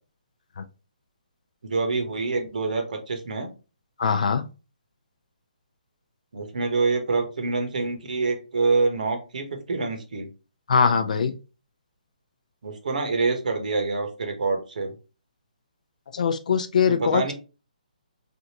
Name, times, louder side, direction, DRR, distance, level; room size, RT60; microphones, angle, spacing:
voice 1, 1.6-3.5 6.3-10.3 12.6-14.9 16.9-17.3, right 3 dB, 65° right, 5 dB, 0.9 m, -26 dB
voice 2, 4.0-4.4 10.7-11.3 16.1-17.3, left 6 dB, 60° left, 9 dB, 0.5 m, -21 dB
3.4 x 2.5 x 2.8 m, 0.32 s
hypercardioid pair, 160°, 5 cm